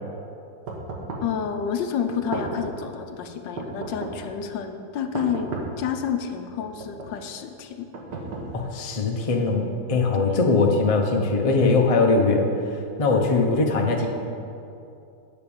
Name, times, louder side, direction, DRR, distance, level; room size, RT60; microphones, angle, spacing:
sound 1, 0.7-1.4 2.1-2.8 3.6-4.3 5.1-5.9 6.6-7.2 7.9-8.8, right 3 dB, 70° right, 1.7 m, -34 dB
voice 1, 1.2-5.5 5.8-7.9 10.1-10.4, left 7 dB, 80° left, 7 dB, 1.4 m, -29 dB
voice 2, 8.5-12.5 13.0-14.1, left 3 dB, 40° left, 1 dB, 0.5 m, -21 dB
9.0 x 5.7 x 7.0 m, 2.6 s
omnidirectional pair, 2.0 m